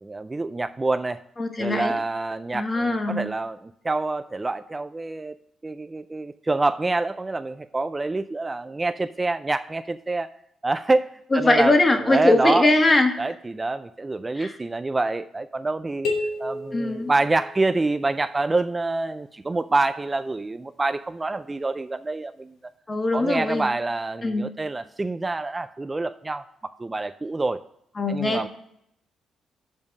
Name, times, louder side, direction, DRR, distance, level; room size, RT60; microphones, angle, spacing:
voice 1, 0.0-1.2 1.6-5.3 5.6-10.3 10.6-12.7 13.2-16.1 16.4-22.5 23.1-27.6 28.1-28.5, right 2 dB, 20° right, 11 dB, 0.3 m, -26 dB
voice 2, 1.4-1.9 2.5-3.3 11.3-13.2 14.4-14.5 16.7-17.1 22.9-23.7 24.2-24.4 28.0-28.5, left 2 dB, 25° left, 5 dB, 1.4 m, -21 dB
sound 1, 16.0-18.0, left 2 dB, 85° left, 1.6 m, -31 dB
7.2 x 5.3 x 6.3 m, 0.76 s
cardioid pair, 90°, 0 cm